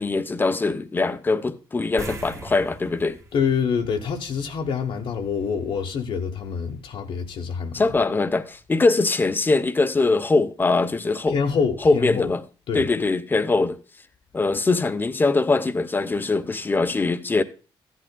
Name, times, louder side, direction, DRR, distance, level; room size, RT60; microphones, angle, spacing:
voice 1, 0.0-3.2 7.7-11.4 11.8-12.4 12.7-13.8 14.3-17.4, left 3 dB, 20° left, 0.6 m, -22 dB
sound 1, 2.0-4.8 5.1-5.2 8.1-8.2 8.6-8.7, right 2 dB, 30° right, 1.2 m, -40 dB
voice 2, 3.3-7.8 11.3-12.3 12.7-12.8, left 6 dB, 70° left, 0.9 m, -26 dB
14.5 x 11.0 x 2.2 m
cardioid pair, 115°, 9 cm